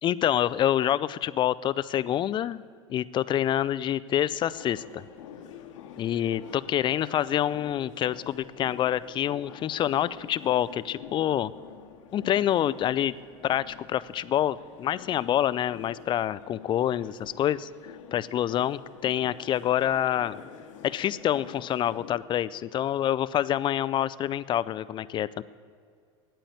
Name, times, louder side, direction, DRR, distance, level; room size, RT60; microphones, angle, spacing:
voice 1, 0.0-2.6 2.9-5.0 6.0-11.5 12.1-13.2 13.4-17.7 18.1-20.4 20.8-25.4, left 11 dB, 30° left, 17 dB, 0.4 m, -27 dB
sound 1, 4.4-22.2, left 8 dB, 85° left, 1.1 m, -47 dB
9.0 x 9.0 x 9.3 m, 2.2 s
supercardioid pair, 105°, 16 cm